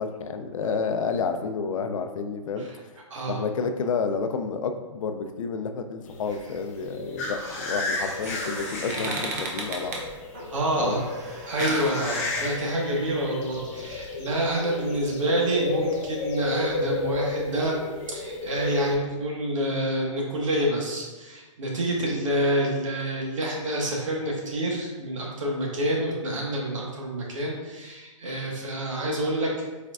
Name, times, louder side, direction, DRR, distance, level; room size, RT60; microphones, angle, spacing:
voice 1, 0.0-2.7 3.3-9.9 10.8-11.0 22.0-22.2, left 5 dB, 80° left, 7 dB, 0.5 m, -30 dB
sound 1, 6.1-18.9, left 2 dB, 25° left, 0.6 m, -32 dB
sound 2, 7.7-13.3, right 2 dB, 30° right, 0.6 m, -36 dB
voice 2, 10.5-11.1 11.5-17.7 18.1-29.5, right 1 dB, 70° right, -2 dB, 1.3 m, -27 dB
4.7 x 4.3 x 2.3 m, 1.2 s
hypercardioid pair, 175°, 17 cm